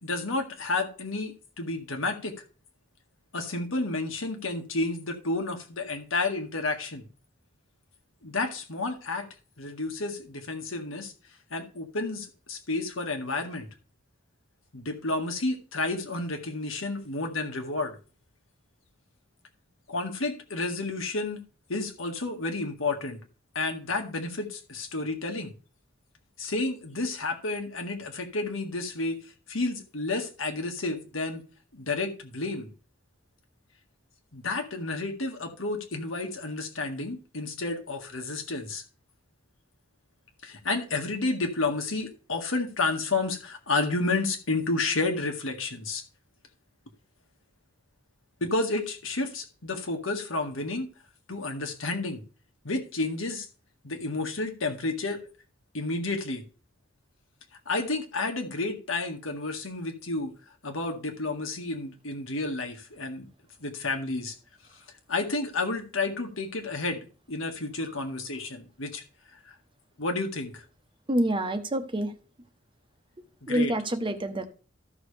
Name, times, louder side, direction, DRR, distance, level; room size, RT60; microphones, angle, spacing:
voice 1, 0.0-2.3 3.3-7.1 8.2-9.3 9.6-11.1 11.5-13.7 14.7-18.0 19.9-21.4 21.7-23.2 23.6-25.5 26.4-29.2 29.5-31.4 31.7-32.7 34.3-38.8 40.4-46.0 48.4-50.9 51.3-52.2 52.6-53.5 53.8-55.2 55.7-56.4 57.7-60.3 60.6-63.3 63.6-64.4 65.1-69.0 69.5-69.6 70.0-70.6 73.5-73.7, left 3 dB, 90° left, 1.9 m, -31 dB
voice 2, 71.1-72.1 73.5-74.5, right 1 dB, 25° right, 0.9 m, -27 dB
14.0 x 6.2 x 3.3 m
head